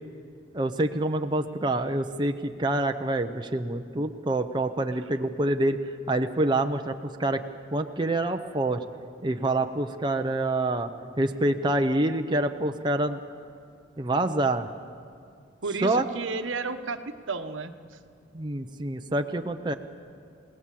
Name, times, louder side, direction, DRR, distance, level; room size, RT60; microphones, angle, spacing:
voice 1, 0.5-7.4 7.7-8.8 9.2-10.9 11.2-13.2 14.0-14.7 15.8-16.0 18.3-19.7, right 2 dB, 25° right, 5 dB, 0.7 m, -26 dB
voice 2, 15.6-17.0 17.3-18.0, right 4 dB, 80° right, 8 dB, 1.1 m, -33 dB
28.5 x 18.0 x 7.5 m, 2.3 s
head